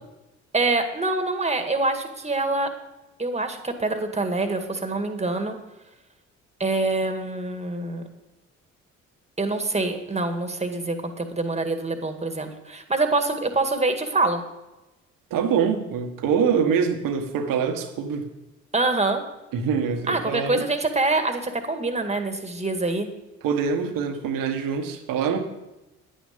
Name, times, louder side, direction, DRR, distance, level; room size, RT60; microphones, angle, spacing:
voice 1, 0.5-2.7 3.2-5.6 6.6-8.1 9.4-14.4 18.7-19.2 20.1-23.1, right 2 dB, 20° right, 6 dB, 1.8 m, -25 dB
voice 2, 15.3-18.3 19.5-20.7 23.4-25.4, right 6 dB, 70° right, 6 dB, 1.5 m, -24 dB
10.0 x 9.2 x 5.2 m, 1.0 s
hypercardioid pair, 50°, 34 cm